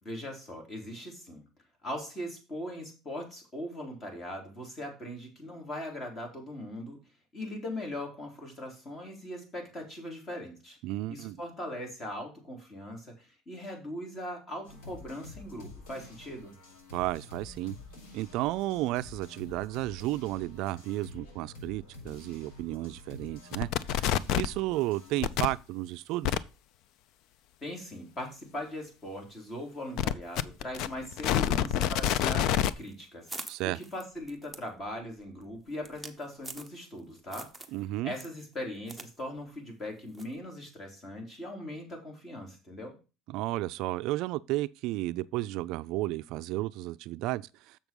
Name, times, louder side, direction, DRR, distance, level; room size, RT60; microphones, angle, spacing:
voice 1, 0.0-1.4 1.8-7.0 7.3-10.8 11.1-16.6 27.6-37.5 38.0-43.0, left 1 dB, 25° left, 3.6 m, -40 dB
voice 2, 10.8-11.4 16.9-17.7 18.1-24.1 24.3-26.4 33.5-33.8 37.7-38.1 43.3-47.9, right 17 dB, 60° right, 0.4 m, -33 dB
sound 1, 14.6-25.6, left 3 dB, 80° left, 5.2 m, -48 dB
sound 2, 23.5-24.6 25.2-25.5 26.2-26.4 30.0-32.7, left 11 dB, 55° left, 0.5 m, -27 dB
sound 3, 32.7-37.0 37.3-37.8 38.1-39.1 39.4-39.5 40.1-40.4, right 2 dB, ahead, 1.1 m, -45 dB
7.2 x 6.1 x 5.2 m
cardioid pair, 145°, 0 cm